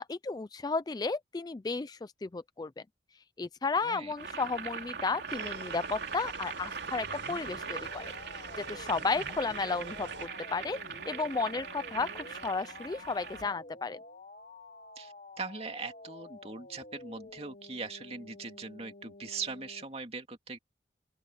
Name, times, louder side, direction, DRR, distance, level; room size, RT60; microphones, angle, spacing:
voice 1, 0.0-2.7 3.4-8.1 8.7-10.8 11.1-14.0, left 4 dB, 20° left, 0.3 m, -33 dB
voice 2, 3.8-4.1 15.0-20.6, right 4 dB, 35° right, 2.5 m, -41 dB
Boiling, 4.1-13.5, right 5 dB, 65° right, 3.2 m, -41 dB
sound 1, 5.3-10.3, right 4 dB, 90° right, 6.8 m, -47 dB
sound 2, 7.0-19.8, left 2 dB, 45° left, 1.1 m, -50 dB
open air
head